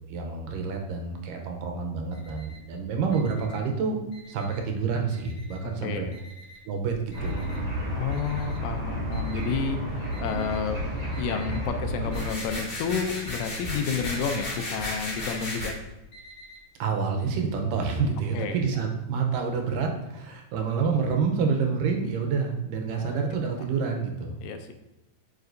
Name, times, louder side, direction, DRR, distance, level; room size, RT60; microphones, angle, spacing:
voice 1, 0.1-4.0 4.3-6.1 6.7-7.3 16.8-24.3, right 5 dB, 80° right, 3 dB, 2.4 m, -28 dB
Alarm, 1.9-2.7 3.1-4.7 5.1-5.8 6.1-10.6 11.1-11.7 12.0-12.6 12.9-16.6, equal, 50° left, 3.5 m, -49 dB
voice 2, 5.8-6.2 8.0-10.9 11.2-15.8 18.3-18.6 22.9-23.2 24.4-24.7, left 6 dB, 80° left, 6 dB, 2.1 m, -31 dB
sound 1, 7.1-12.3, equal, 35° right, 2.0 m, -31 dB
sound 2, 12.1-15.7, left 1 dB, 30° left, 2.2 m, -34 dB
7.9 x 5.1 x 2.6 m, 0.96 s
omnidirectional pair, 4.0 m